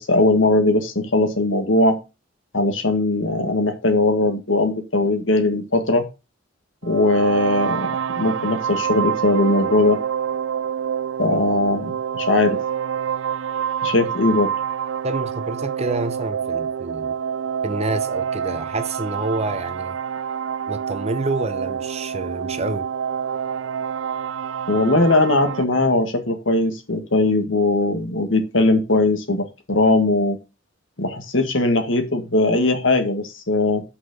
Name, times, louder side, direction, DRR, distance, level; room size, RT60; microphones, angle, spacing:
voice 1, 0.0-2.0 2.5-6.0 6.8-10.0 11.2-12.6 13.8-14.5 24.7-30.4 31.0-33.8, left 2 dB, 70° left, 1.9 m, -19 dB
sound 1, 6.8-25.6, right 8 dB, 70° right, 0.4 m, -27 dB
voice 2, 15.0-17.1 17.6-20.0 20.7-22.9, right 2 dB, 35° right, 0.8 m, -27 dB
5.9 x 5.6 x 6.7 m
head